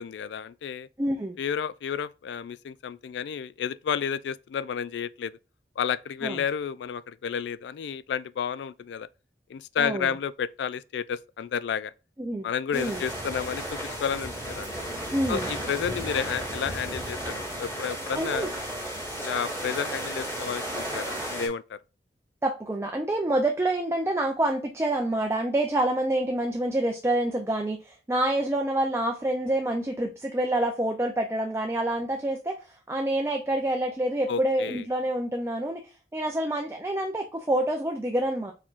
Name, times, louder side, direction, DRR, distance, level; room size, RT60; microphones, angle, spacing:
voice 1, 0.0-0.9 1.4-5.3 5.8-9.1 9.5-11.9 12.4-14.7 15.3-18.5 19.2-21.8 34.3-34.8, left 7 dB, 75° left, 0.3 m, -31 dB
voice 2, 1.0-1.4 6.2-6.4 9.8-10.1 12.2-12.5 12.7-13.0 15.1-15.5 18.1-18.5 22.4-38.5, right 1 dB, 15° right, 0.4 m, -27 dB
sound 1, 12.7-21.5, right 1 dB, 15° left, 2.1 m, -34 dB
4.4 x 4.3 x 2.4 m
head